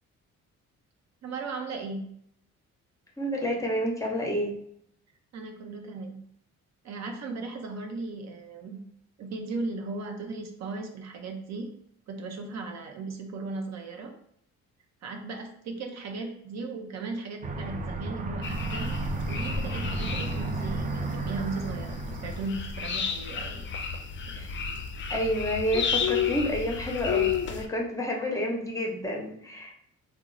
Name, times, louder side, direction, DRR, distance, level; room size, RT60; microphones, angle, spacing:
voice 1, 1.2-2.0 5.3-6.2 6.8-8.8 9.2-11.7 12.1-14.1 15.0-18.9 19.3-23.7 24.2-24.4, right 3 dB, 65° right, 3 dB, 0.6 m, -37 dB
voice 2, 3.2-4.6 24.3-24.5 25.1-29.7, equal, 10° left, -1 dB, 0.7 m, -29 dB
Aircraft, 17.4-23.5, right 2 dB, 25° right, 0.4 m, -33 dB
GH & Frogs, 18.4-27.7, left 7 dB, 40° left, 0.4 m, -32 dB
2.9 x 2.0 x 3.8 m, 0.68 s
cardioid pair, 90°, 30 cm